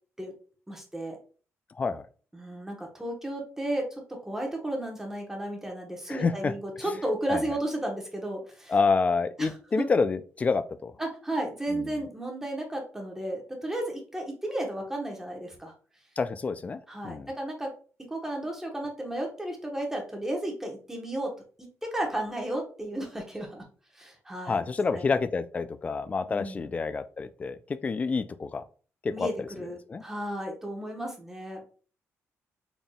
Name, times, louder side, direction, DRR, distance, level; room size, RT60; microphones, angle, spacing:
voice 1, 0.7-1.2 2.3-8.7 9.4-9.5 9.8-9.9 11.0-15.7 16.9-17.7 18.1-21.3 21.6-23.6 23.9-24.6 24.9-25.0 26.3-26.6 29.1-31.6, right 1 dB, 10° right, 1 dB, 1.1 m, -33 dB
voice 2, 1.7-2.1 6.1-6.5 7.3-7.4 8.7-10.9 11.7-12.1 16.2-17.3 24.5-28.6 29.0-29.5 29.9-30.0, left 4 dB, 25° left, 13 dB, 0.3 m, -28 dB
4.0 x 3.6 x 2.3 m, 0.40 s
cardioid pair, 125°, 5 cm